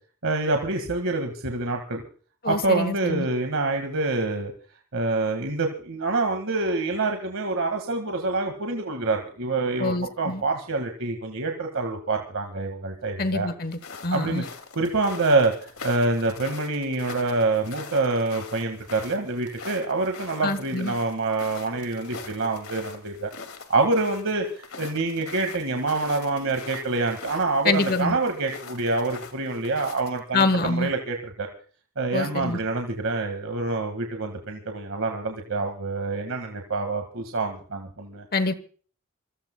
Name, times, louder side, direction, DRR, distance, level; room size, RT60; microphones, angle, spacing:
voice 1, 0.2-2.0 2.5-4.5 4.9-13.5 14.1-14.4 14.8-23.3 23.7-24.4 24.8-31.5 32.0-38.3, right 3 dB, 65° right, 3 dB, 1.8 m, -26 dB
voice 2, 2.4-3.3 9.8-10.4 13.2-14.4 20.4-20.9 27.6-28.2 30.3-30.9 32.1-32.6 38.3-38.5, left 3 dB, 45° left, 13 dB, 1.1 m, -25 dB
sound 1, 13.7-30.2, left 5 dB, 70° left, 2.4 m, -43 dB
26.5 x 17.5 x 2.3 m, 0.42 s
head